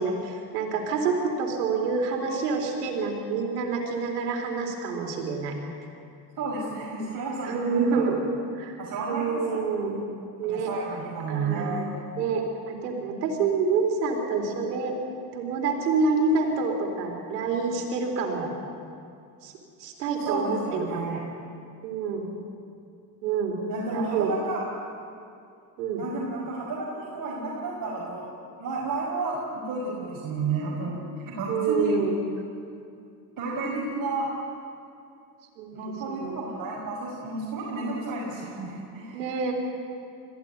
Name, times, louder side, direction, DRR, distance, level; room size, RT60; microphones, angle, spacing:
voice 1, 0.0-5.6 7.0-7.1 7.4-8.2 8.5-8.8 9.1-10.0 10.4-10.7 11.3-11.9 12.2-14.9 15.3-18.5 19.4-19.5 19.8-21.2 21.8-22.2 23.2-23.6 23.9-24.3 25.8-26.0 31.5-32.1 35.6-35.8 36.1-36.4 39.1-39.5, right 4 dB, 90° right, 2 dB, 3.9 m, -27 dB
voice 2, 6.4-8.0 8.8-9.6 10.4-11.9 20.2-21.3 23.7-24.6 26.0-28.3 28.6-31.0 31.3-31.9 33.4-34.3 35.7-39.2, right 3 dB, 45° right, -5 dB, 5.8 m, -31 dB
22.5 x 15.5 x 9.4 m, 2.5 s
supercardioid pair, 80°, 47 cm